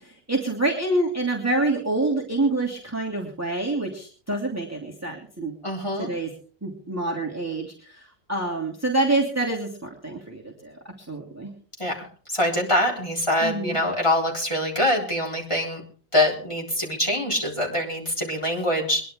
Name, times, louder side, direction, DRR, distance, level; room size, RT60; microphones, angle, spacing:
voice 1, 0.3-5.5 6.0-6.3 6.6-7.7 8.3-10.8 11.1-11.5 13.4-13.8, right 2 dB, 10° right, -1 dB, 2.7 m, -26 dB
voice 2, 5.6-6.1 11.8-12.0 12.3-15.8 16.1-19.0, left 1 dB, 20° left, -2 dB, 3.9 m, -24 dB
23.5 x 11.0 x 3.7 m, 0.41 s
omnidirectional pair, 1.6 m